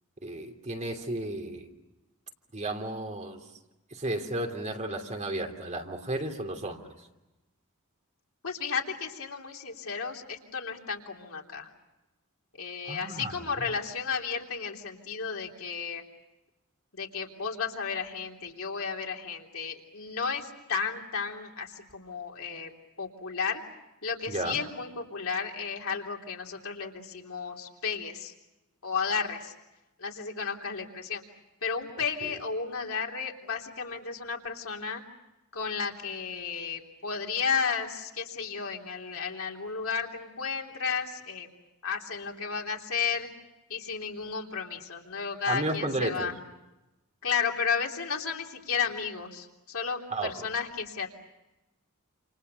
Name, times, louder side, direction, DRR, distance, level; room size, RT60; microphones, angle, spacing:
voice 1, 0.2-1.7 2.5-3.4 3.9-6.9 12.9-13.3 24.3-24.6 32.2-32.3 45.5-46.3 50.1-50.3, right 2 dB, 35° right, 3 dB, 3.0 m, -33 dB
voice 2, 8.4-11.7 12.6-16.0 16.9-22.7 23.0-23.6 24.0-28.3 28.8-29.5 30.0-31.2 31.6-35.0 35.5-41.5 41.8-43.3 43.7-46.3 47.2-51.1, left 6 dB, 70° left, 1 dB, 3.4 m, -33 dB
28.5 x 28.5 x 6.8 m, 1.0 s
head